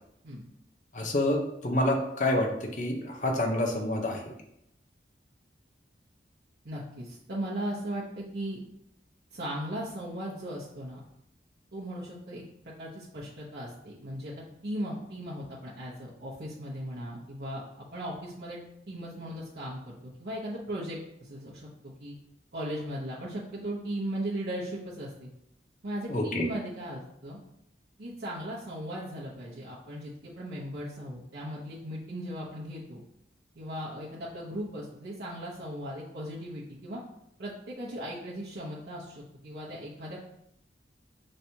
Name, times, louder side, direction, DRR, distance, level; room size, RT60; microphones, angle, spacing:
voice 1, 0.9-4.3 26.1-26.4, left 1 dB, 45° left, 2 dB, 0.7 m, -28 dB
voice 2, 6.6-8.6 9.3-11.0 11.7-12.4 12.8-18.6 18.9-22.2 22.5-25.3 25.8-27.4 28.0-33.0 33.5-37.0 37.4-40.2, right 1 dB, 70° right, -7 dB, 0.9 m, -37 dB
5.7 x 3.2 x 2.7 m, 0.77 s
head